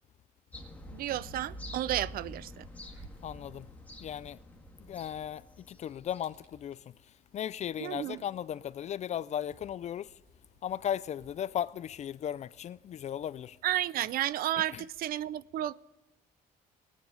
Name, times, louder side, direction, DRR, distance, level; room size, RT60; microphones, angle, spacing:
sound 1, 0.5-6.4 6.7-6.8, equal, 10° left, 1.7 m, -47 dB
voice 1, 0.9-2.7 7.8-8.2 13.6-15.7, right 12 dB, 60° right, 0.4 m, -32 dB
sound 2, 2.1-15.0, right 2 dB, 15° right, 3.7 m, -63 dB
voice 2, 3.2-3.7 4.0-4.4 4.9-5.4 5.7-6.8 7.3-10.1 10.6-13.6 14.6-14.8, left 10 dB, 45° left, 0.4 m, -36 dB
19.0 x 9.6 x 3.9 m
cardioid pair, 110°, 17 cm